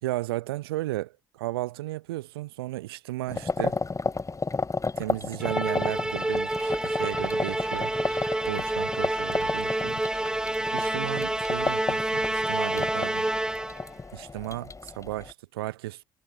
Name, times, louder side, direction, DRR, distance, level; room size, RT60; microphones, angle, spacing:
voice 1, 0.0-3.8 5.0-10.0 10.7-13.3 14.1-16.0, right 17 dB, 85° right, 1.6 m, -34 dB
sound 1, 3.3-15.3, left 4 dB, 25° left, 3.2 m, -33 dB
Musical instrument, 5.4-13.9, right 1 dB, 5° right, 0.5 m, -28 dB
hypercardioid pair, 55°, 12 cm